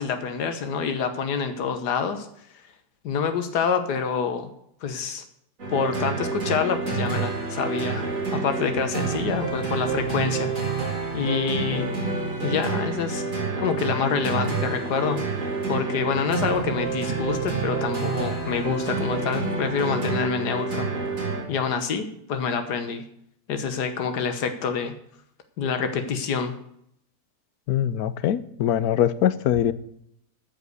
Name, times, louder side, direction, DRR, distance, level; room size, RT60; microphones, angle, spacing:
voice 1, 0.0-2.3 3.0-4.5 4.8-5.2 5.7-8.0 8.3-10.5 11.1-11.9 12.4-13.2 13.6-15.2 15.7-20.9 21.5-23.0 23.5-24.9 25.6-26.5, left 6 dB, 90° left, 8 dB, 1.7 m, -27 dB
sound 1, 5.6-21.4, right 4 dB, 55° right, 3.6 m, -28 dB
voice 2, 27.7-29.7, left 10 dB, 70° left, 15 dB, 1.2 m, -22 dB
13.5 x 5.2 x 8.1 m, 0.73 s
omnidirectional pair, 1.7 m